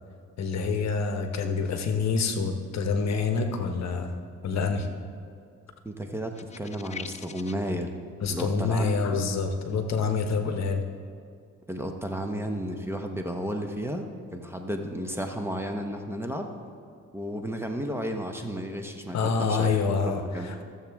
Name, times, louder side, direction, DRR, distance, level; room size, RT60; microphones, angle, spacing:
voice 1, 0.4-4.2 4.4-4.9 8.2-10.8 19.1-20.6, left 4 dB, 60° left, 6 dB, 1.0 m, -27 dB
voice 2, 5.8-8.0 8.3-9.2 11.7-14.0 14.3-16.5 17.1-19.7 20.0-20.5, equal, 10° right, 4 dB, 0.9 m, -33 dB
sound 1, 6.3-7.7, left 7 dB, 25° left, 0.4 m, -42 dB
14.5 x 7.3 x 3.5 m, 2.3 s
cardioid pair, 90°, 30 cm